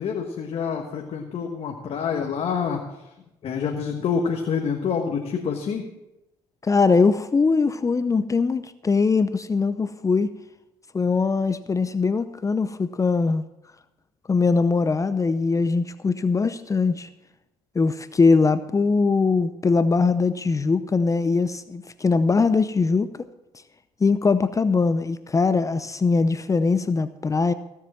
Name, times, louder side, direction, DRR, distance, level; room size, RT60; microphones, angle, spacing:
voice 1, 0.0-2.8 3.4-5.9, left 6 dB, 55° left, 3 dB, 1.4 m, -27 dB
voice 2, 6.6-10.3 10.9-13.4 14.3-17.1 17.7-23.1 24.0-27.5, left 4 dB, 25° left, 13 dB, 0.6 m, -21 dB
16.0 x 7.4 x 6.1 m, 0.94 s
hypercardioid pair, 60°, 12 cm